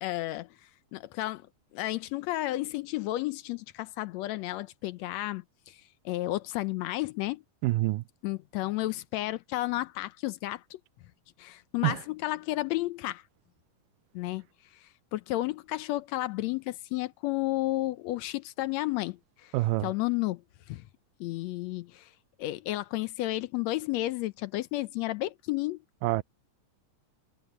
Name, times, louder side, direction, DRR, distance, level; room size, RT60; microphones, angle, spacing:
voice 1, 0.0-1.5 1.7-7.4 8.2-10.8 11.4-13.2 14.1-14.4 14.7-19.5 19.8-20.4 20.7-20.8 21.2-22.1 22.4-25.8, left 17 dB, 80° left, 1.5 m, -32 dB
voice 2, 7.6-8.0 11.8-12.0 19.5-19.9 26.0-26.2, right 19 dB, 85° right, 2.2 m, -26 dB
omnidirectional pair, 3.7 m